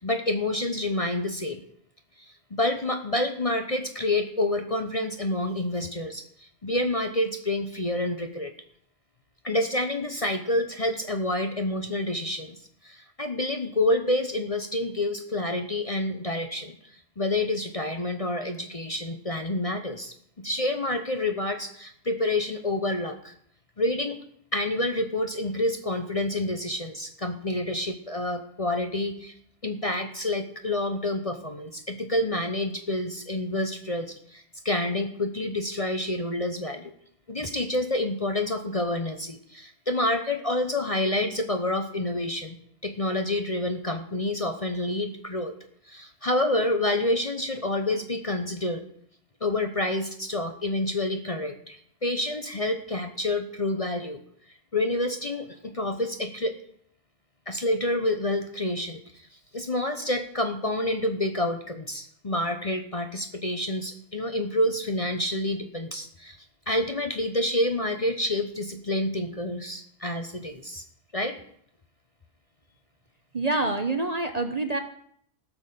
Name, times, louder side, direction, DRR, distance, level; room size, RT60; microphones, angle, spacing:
voice 1, 0.0-1.6 2.2-8.5 9.4-12.6 12.8-16.8 17.2-23.3 23.8-24.2 24.5-29.3 29.6-36.9 37.3-42.6 42.8-45.5 45.9-48.8 49.4-54.2 54.7-56.6 57.5-59.3 59.5-66.4 66.7-70.8 71.1-71.4, left 1 dB, 30° left, 6 dB, 0.8 m, -28 dB
voice 2, 73.3-74.8, right 2 dB, 35° right, 7 dB, 0.8 m, -26 dB
16.0 x 6.1 x 6.8 m, 0.67 s
omnidirectional pair, 1.3 m